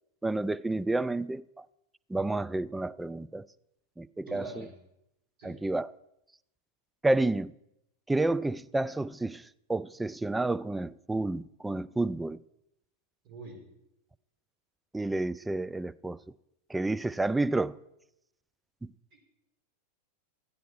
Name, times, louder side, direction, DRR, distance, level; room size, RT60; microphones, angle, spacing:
voice 1, 0.2-1.6 2.1-3.4 4.0-4.7 5.4-5.9 7.0-7.5 8.1-9.4 9.7-12.4 14.9-16.2 16.7-17.7 18.8-18.9, right 2 dB, 5° right, 0.3 m, -30 dB
voice 2, 4.3-4.7 5.4-5.6 13.2-13.6, right 2 dB, 45° right, 4.3 m, -43 dB
13.5 x 9.2 x 4.5 m
figure-of-eight pair, 90°, 0 cm